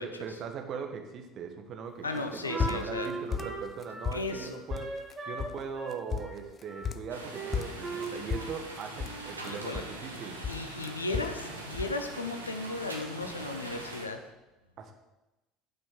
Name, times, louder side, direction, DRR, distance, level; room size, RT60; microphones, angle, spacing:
voice 1, 0.0-2.0 2.3-10.4 14.8-14.9, right 6 dB, 45° right, 5 dB, 1.4 m, -40 dB
voice 2, 2.0-3.1 4.1-4.6 9.4-9.8 10.5-14.2, left 3 dB, 85° left, 6 dB, 0.8 m, -35 dB
Wind instrument woodwind instrument, 2.0-5.5 5.8-6.9 7.3-8.6 8.9-9.4, right 3 dB, 25° right, 2.9 m, -39 dB
sound 1, 2.2-3.1 3.3-4.4 4.7-5.1 5.4-5.6 5.9-7.2 7.5-10.2 10.4-11.4 11.7-12.0, left 6 dB, 35° left, 0.6 m, -34 dB
sound 2, 7.1-14.1, right 2 dB, 85° right, 1.2 m, -42 dB
9.2 x 6.1 x 6.7 m, 1.0 s
figure-of-eight pair, 60°, 0 cm